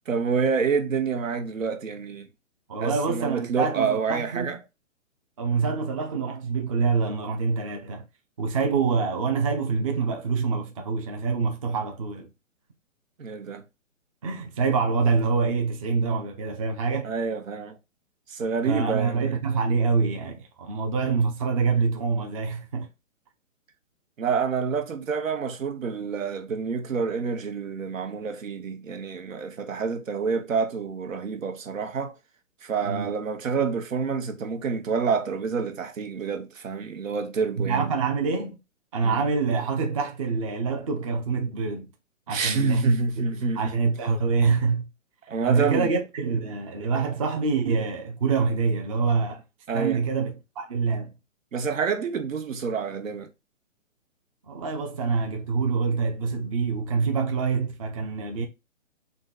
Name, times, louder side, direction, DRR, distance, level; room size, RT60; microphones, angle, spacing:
voice 1, 0.1-2.3 2.8-4.6 13.2-13.6 17.0-17.8 18.3-19.4 24.2-32.1 32.6-37.9 39.0-39.2 42.3-43.7 45.3-45.9 49.7-50.0 51.5-53.3, right 5 dB, 75° right, 1.0 m, -28 dB
voice 2, 2.7-4.5 5.4-8.0 8.4-12.3 14.2-17.1 18.6-22.9 32.8-33.1 37.6-38.6 38.9-41.9 42.3-44.9 45.4-49.4 49.7-51.1 54.5-58.4, right 5 dB, 25° right, 0.5 m, -26 dB
3.9 x 2.6 x 3.9 m
hypercardioid pair, 150°, 39 cm